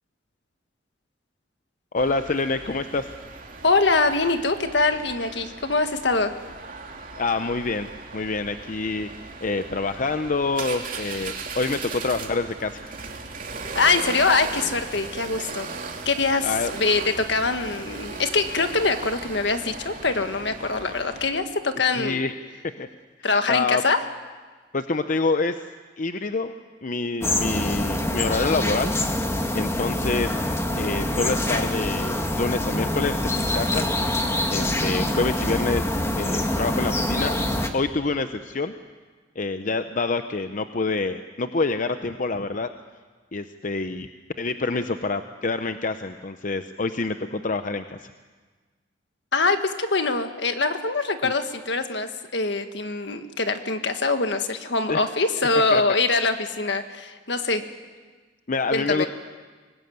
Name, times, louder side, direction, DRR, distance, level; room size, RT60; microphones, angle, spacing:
voice 1, 1.9-3.1 7.2-9.1 9.4-12.8 16.4-16.7 22.0-22.3 22.8-22.9 23.5-23.8 24.7-25.6 26.0-26.5 26.8-28.9 29.5-30.3 30.8-33.9 34.5-35.9 36.2-37.4 37.7-38.7 39.4-42.7 43.3-44.1 44.4-48.1 51.2-51.3 54.9-55.0 55.7-55.8 58.5-59.1, left 3 dB, 45° left, 9 dB, 0.8 m, -26 dB
sound 1, 2.0-21.3, right 4 dB, 50° right, 2.7 m, -37 dB
voice 2, 3.6-6.3 13.7-15.7 16.0-22.2 23.2-24.0 49.3-57.6 58.7-59.1, left 3 dB, 70° left, 8 dB, 1.7 m, -23 dB
sound 2, 27.2-37.7, left 1 dB, 15° left, 1.8 m, -25 dB
24.5 x 20.0 x 9.4 m, 1.4 s
head